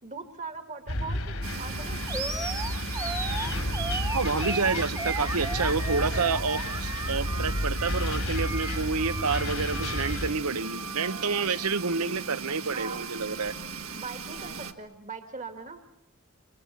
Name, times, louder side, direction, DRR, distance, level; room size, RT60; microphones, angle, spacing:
voice 1, 0.0-2.0 12.7-13.1 13.9-15.8, right 4 dB, 35° right, 7 dB, 1.5 m, -40 dB
sound 1, 0.9-10.3, left 1 dB, 75° left, 3.7 m, -32 dB
sound 2, 1.4-14.7, right 5 dB, 70° right, 1.7 m, -38 dB
Animal, 2.1-10.2, right 3 dB, 15° right, 1.3 m, -35 dB
voice 2, 4.1-13.5, right 4 dB, 90° right, 13 dB, 1.0 m, -29 dB
29.0 x 25.5 x 7.1 m, 0.79 s
head